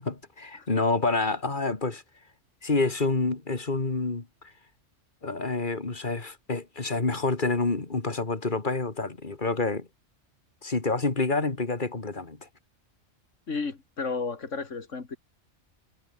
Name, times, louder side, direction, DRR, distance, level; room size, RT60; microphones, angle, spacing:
voice 1, 0.0-2.0 2.6-4.3 5.2-9.9 10.6-12.5, left 3 dB, 40° left, 2.4 m, -28 dB
voice 2, 13.5-15.2, left 4 dB, 75° left, 2.6 m, -33 dB
omnidirectional pair, 1.3 m